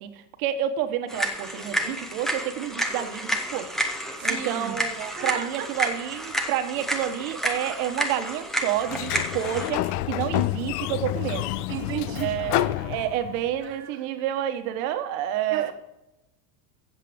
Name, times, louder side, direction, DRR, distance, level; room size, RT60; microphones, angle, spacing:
voice 1, 0.0-3.7 4.2-11.5 12.2-15.7, right 11 dB, 55° right, 8 dB, 1.3 m, -29 dB
sound 1, 1.1-9.7, right 1 dB, ahead, 0.6 m, -30 dB
voice 2, 4.2-5.7 11.7-12.4 12.8-12.9 13.6-14.0 15.5-15.7, right 10 dB, 25° right, 1 dB, 0.9 m, -34 dB
Sliding door, 8.8-13.6, left 15 dB, 65° left, 0.6 m, -28 dB
16.0 x 7.6 x 3.5 m, 0.91 s
supercardioid pair, 160°, 49 cm